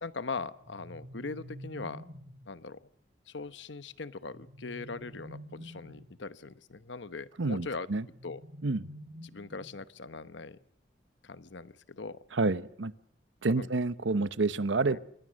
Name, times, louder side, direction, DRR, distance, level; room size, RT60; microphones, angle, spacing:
voice 1, 0.0-2.0 2.5-2.9 3.3-7.9 8.2-8.4 9.2-10.6 11.2-12.2 13.5-13.7 14.9-15.0, left 4 dB, 75° left, 1.0 m, -40 dB
sound 1, 0.6-2.5 4.3-6.2 8.0-9.9, equal, 50° right, 2.3 m, -48 dB
voice 2, 7.4-8.1 8.6-8.8 12.3-12.9 13.4-15.0, right 3 dB, 85° right, 0.9 m, -28 dB
27.5 x 22.5 x 6.4 m
head